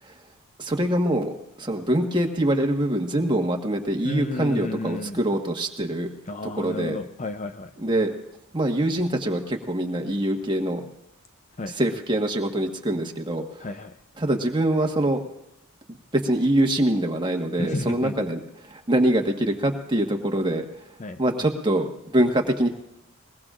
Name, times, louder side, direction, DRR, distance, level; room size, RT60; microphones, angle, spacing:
voice 1, 0.6-1.3 1.6-6.1 6.4-7.0 7.8-8.1 8.5-10.9 11.7-13.6 14.2-15.2 16.1-18.4 18.7-20.7 21.2-22.7, right 1 dB, 20° right, 3 dB, 1.4 m, -24 dB
voice 2, 4.0-5.2 6.3-7.7 11.6-11.7 13.6-13.9 17.6-18.3 21.0-21.2, left 2 dB, 35° left, 8 dB, 0.6 m, -32 dB
21.5 x 20.5 x 2.5 m, 0.87 s
head